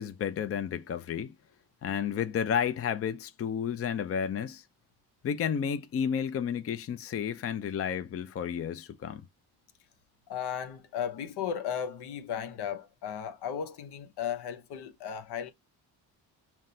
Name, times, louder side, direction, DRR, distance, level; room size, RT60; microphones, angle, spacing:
voice 1, 0.0-1.3 1.8-4.6 5.2-9.2, left 8 dB, 35° left, 0.5 m, -31 dB
voice 2, 10.3-15.5, left 8 dB, 70° left, 0.8 m, -35 dB
5.7 x 2.1 x 2.7 m
supercardioid pair, 75°, 40 cm